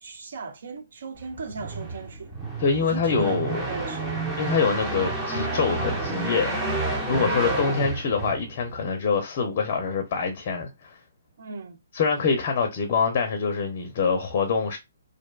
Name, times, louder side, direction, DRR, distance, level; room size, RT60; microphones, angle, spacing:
voice 1, 0.0-2.4 2.8-4.3 7.2-7.6 11.4-11.8, right 4 dB, 65° right, 0.6 m, -36 dB
sound 1, 1.2-8.8, right 2 dB, 10° right, 0.5 m, -30 dB
voice 2, 2.6-3.6 4.4-6.7 7.1-11.0 11.9-14.8, left 5 dB, 40° left, 0.5 m, -25 dB
2.5 x 2.1 x 2.2 m
hypercardioid pair, 155°, 0 cm